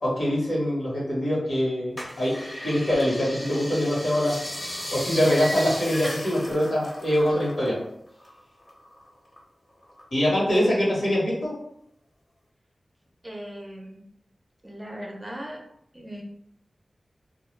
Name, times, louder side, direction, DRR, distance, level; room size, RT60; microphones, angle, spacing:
voice 1, 0.0-4.4 4.9-7.8 10.1-11.5, equal, 75° left, -6 dB, 1.2 m, -24 dB
sound 1, 2.0-7.8 8.1-9.4 9.8-10.7 11.1-11.2, equal, 45° left, 0.8 m, -36 dB
voice 2, 13.2-14.0 14.6-15.6 15.9-16.2, equal, 20° right, 0 dB, 0.5 m, -38 dB
2.2 x 2.2 x 3.1 m, 0.74 s
wide cardioid pair, 75°, 0 cm